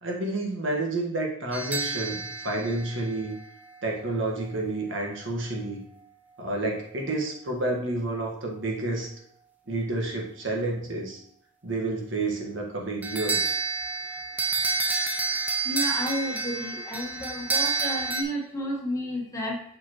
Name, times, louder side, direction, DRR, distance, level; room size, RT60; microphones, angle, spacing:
voice 1, 0.0-3.4 3.8-5.8 6.4-9.1 9.7-11.2 11.6-13.6, right 2 dB, 60° right, -1 dB, 1.6 m, -30 dB
sound 1, 1.5-3.8 13.0-18.2, right 4 dB, 10° right, 0.6 m, -29 dB
voice 2, 15.6-19.6, equal, 15° left, -1 dB, 1.3 m, -31 dB
6.6 x 5.6 x 3.0 m, 0.68 s
head